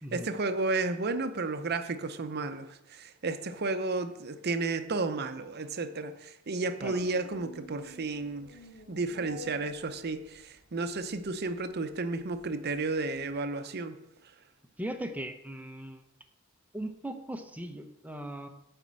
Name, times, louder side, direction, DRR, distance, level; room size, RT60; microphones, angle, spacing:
voice 1, 0.1-8.6 8.9-14.0, right 3 dB, 50° right, 9 dB, 0.7 m, -32 dB
sound 1, 6.8-13.4, left 1 dB, 70° left, 1.4 m, -51 dB
voice 2, 14.8-16.0 16.7-18.5, right 1 dB, 5° right, 6 dB, 0.8 m, -38 dB
9.3 x 4.5 x 7.5 m, 0.83 s
head